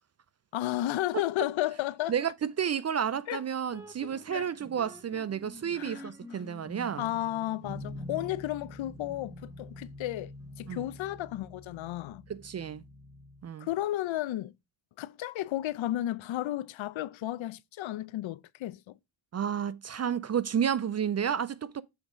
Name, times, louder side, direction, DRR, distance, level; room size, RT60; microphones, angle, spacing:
voice 1, 0.5-2.1 3.3-3.4 4.3-4.5 5.7-6.4 7.0-10.3 10.6-12.2 13.6-14.6 15.0-19.0, left 14 dB, 70° left, 0.6 m, -33 dB
voice 2, 2.1-7.1 10.7-10.9 12.3-12.8 13.4-13.7 19.3-21.8, right 8 dB, 35° right, 0.4 m, -31 dB
sound 1, 3.7-13.5, left 1 dB, 5° right, 1.4 m, -46 dB
7.3 x 3.6 x 4.9 m
cardioid pair, 100°, 49 cm